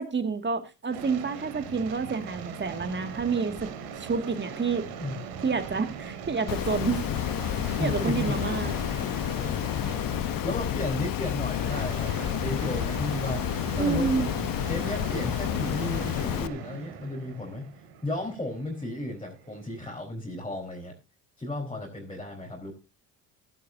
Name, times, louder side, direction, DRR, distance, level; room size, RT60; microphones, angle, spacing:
voice 1, 0.0-3.7 4.0-4.9 5.4-7.0 7.8-8.7 13.8-14.3, right 5 dB, 30° right, 2.2 m, -28 dB
sound 1, 0.9-20.0, right 6 dB, 80° right, 3.1 m, -40 dB
Water, 6.5-16.5, left 12 dB, 60° left, 0.9 m, -30 dB
voice 2, 7.8-8.4 10.4-13.5 13.7-14.4 14.7-20.9 21.4-22.7, left 1 dB, 15° left, 4.4 m, -34 dB
15.0 x 11.5 x 2.7 m
supercardioid pair, 75°, 39 cm